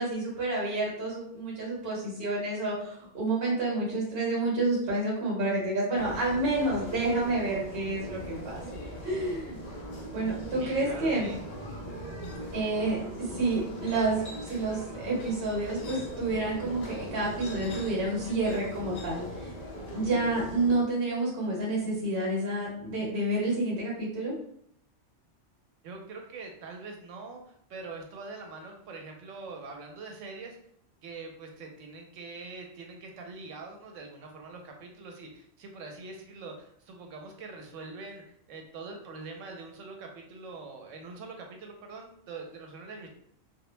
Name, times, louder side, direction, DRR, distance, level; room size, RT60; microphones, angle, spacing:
voice 1, 0.0-8.6 9.0-9.6 10.1-11.3 12.5-19.5 19.9-24.3, right 2 dB, 55° right, -4 dB, 1.1 m, -29 dB
sound 1, 5.9-20.8, equal, 50° left, 0.5 m, -40 dB
voice 2, 10.6-11.4 25.8-30.6 31.0-43.1, right 3 dB, 85° right, 2 dB, 0.9 m, -44 dB
2.2 x 2.1 x 3.0 m, 0.69 s
omnidirectional pair, 1.3 m